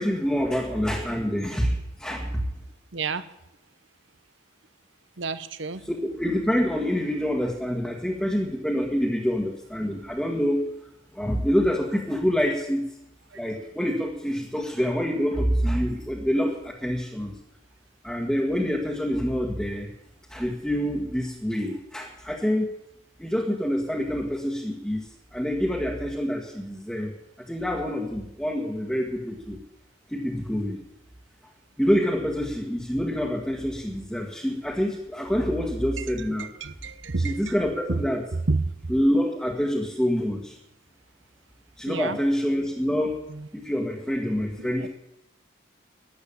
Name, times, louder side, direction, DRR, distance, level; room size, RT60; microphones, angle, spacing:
voice 1, 0.0-2.4 5.9-10.6 11.1-12.8 13.3-17.3 18.0-19.9 20.3-22.7 23.2-25.0 25.3-27.1 27.4-29.6 30.1-30.8 31.8-36.5 37.2-38.2 38.9-40.5 41.8-43.2 43.5-44.9, equal, 5° left, -3 dB, 1.6 m, -26 dB
voice 2, 2.9-3.2 5.2-5.9 13.3-13.4 36.0-37.6 37.9-38.0 38.5-38.7 41.9-42.2 43.3-43.5 44.5-44.9, right 3 dB, 70° right, 14 dB, 0.9 m, -30 dB
12.5 x 10.5 x 8.6 m, 0.85 s
head